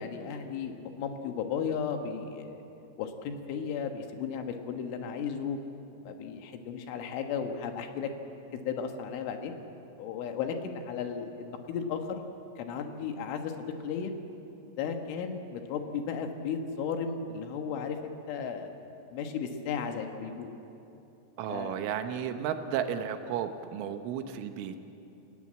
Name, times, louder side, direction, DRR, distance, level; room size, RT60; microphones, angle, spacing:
voice 1, 0.0-2.6 3.0-5.6 6.0-8.1 8.7-9.5 10.0-12.2 12.6-14.1 14.8-18.7 19.1-20.5 21.5-21.8, left 6 dB, 80° left, 5 dB, 3.9 m, -35 dB
voice 2, 21.4-24.9, right 8 dB, 80° right, 7 dB, 3.6 m, -33 dB
29.0 x 17.5 x 7.6 m, 2.9 s
omnidirectional pair, 5.6 m